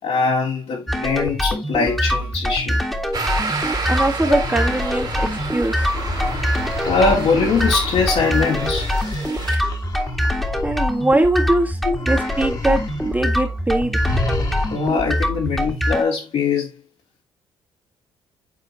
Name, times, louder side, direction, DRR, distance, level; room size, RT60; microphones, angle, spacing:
voice 1, 0.0-2.8 4.3-4.4 6.9-8.9 11.8-11.9 14.7-16.7, left 4 dB, 65° left, 3.6 m, -21 dB
sound 1, 0.9-16.0, equal, ahead, 2.0 m, -24 dB
sound 2, 3.1-9.6, right 3 dB, 40° right, 2.5 m, -30 dB
voice 2, 3.9-5.9 10.6-11.8 12.1-14.0, right 1 dB, 15° right, 1.8 m, -21 dB
sound 3, 4.4-11.5 11.9-13.2 13.5-13.6 14.0-15.1, left 2 dB, 40° left, 2.4 m, -30 dB
8.4 x 4.3 x 3.2 m
supercardioid pair, 60°, 11 cm